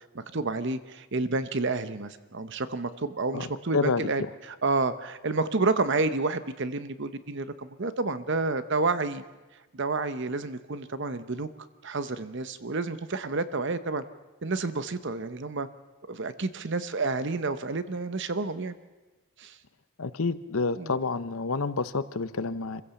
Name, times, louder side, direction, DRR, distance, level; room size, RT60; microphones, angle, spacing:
voice 1, 0.1-9.2 9.7-11.5 11.8-14.0 14.4-15.7 16.1-18.8 19.4-19.6 20.8-21.0, right 3 dB, 55° right, 12 dB, 0.9 m, -30 dB
voice 2, 3.7-4.1 20.0-22.8, left 4 dB, 75° left, 14 dB, 0.9 m, -28 dB
26.0 x 15.5 x 7.1 m, 1.2 s
head